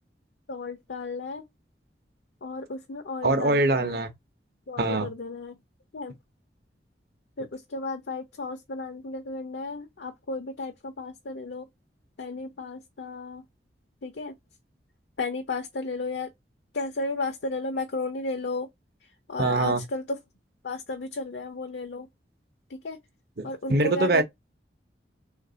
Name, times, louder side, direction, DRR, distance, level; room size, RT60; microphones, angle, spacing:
voice 1, 0.5-1.4 2.4-4.0 4.7-5.6 5.9-6.2 7.4-11.7 12.2-13.4 14.0-14.3 15.2-16.3 16.7-18.7 19.3-20.2 20.6-22.1 22.7-23.0 23.4-24.2, left 3 dB, 80° left, 0.7 m, -33 dB
voice 2, 3.2-4.1 4.8-5.1 19.4-19.8 23.4-24.2, right 2 dB, 60° right, 0.8 m, -23 dB
3.3 x 2.6 x 3.8 m
head